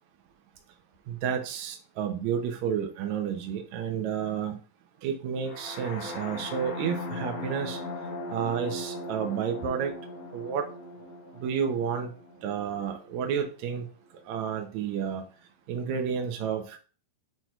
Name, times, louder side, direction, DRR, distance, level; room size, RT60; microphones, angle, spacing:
voice 1, 1.1-4.6 5.0-7.8 8.3-9.9 10.3-10.7 11.3-12.1 12.4-13.9 14.2-15.2 15.7-16.8, right 7 dB, 85° right, 4 dB, 1.6 m, -31 dB
sound 1, 5.4-13.3, left 1 dB, 55° left, 2.3 m, -39 dB
8.7 x 2.9 x 4.5 m, 0.36 s
omnidirectional pair, 4.7 m